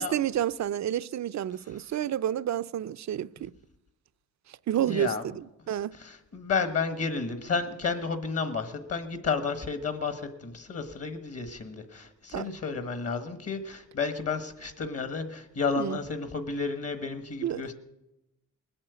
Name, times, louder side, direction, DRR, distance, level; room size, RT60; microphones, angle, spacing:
voice 1, 0.0-3.5 4.7-5.9 12.3-12.5 15.8-16.0 17.4-17.6, right 11 dB, 60° right, 0.4 m, -30 dB
voice 2, 4.8-5.2 6.0-17.7, left 5 dB, 50° left, 1.3 m, -32 dB
20.0 x 8.7 x 8.0 m
wide cardioid pair, 135°, 31 cm